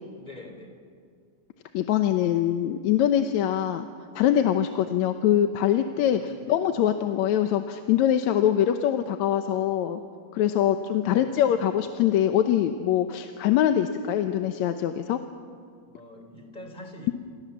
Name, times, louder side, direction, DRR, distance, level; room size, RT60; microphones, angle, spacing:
voice 1, 0.2-0.8 6.1-6.6 11.0-11.8 15.9-17.1, left 1 dB, 15° left, 4 dB, 3.6 m, -45 dB
voice 2, 1.7-3.9 4.2-10.0 10.3-15.2, left 10 dB, 80° left, 7 dB, 2.2 m, -23 dB
28.0 x 28.0 x 7.2 m, 2.2 s
omnidirectional pair, 3.3 m